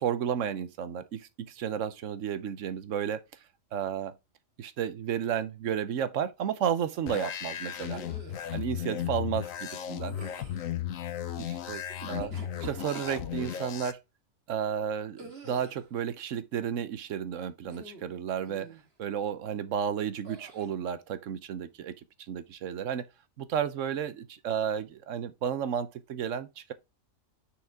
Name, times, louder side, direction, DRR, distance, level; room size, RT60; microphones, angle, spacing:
voice 1, 0.0-3.2 3.7-4.1 4.6-8.0 8.5-10.2 11.4-12.3 12.6-14.0 14.5-21.9 22.2-23.1 23.4-26.7, right 8 dB, 70° right, 1.0 m, -32 dB
sound 1, 7.1-13.9, left 10 dB, 85° left, 1.2 m, -35 dB
sound 2, 7.9-8.5 10.0-10.7 11.9-13.6 15.2-15.9 17.6-18.1 18.5-18.9 20.2-20.7, right 3 dB, 50° right, 1.9 m, -47 dB
6.3 x 4.9 x 3.5 m
omnidirectional pair, 1.4 m